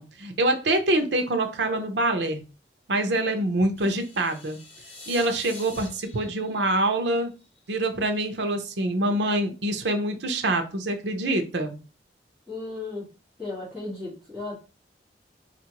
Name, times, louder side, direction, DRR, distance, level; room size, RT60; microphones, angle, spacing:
voice 1, 0.0-2.4 2.9-4.6 5.1-7.3 7.7-11.8, right 1 dB, 80° right, 6 dB, 0.7 m, -25 dB
sound 1, 3.8-7.8, left 2 dB, 35° left, 1.0 m, -46 dB
voice 2, 12.5-13.1 13.4-14.6, left 3 dB, 5° right, -11 dB, 1.8 m, -35 dB
4.2 x 2.5 x 2.9 m, 0.33 s
head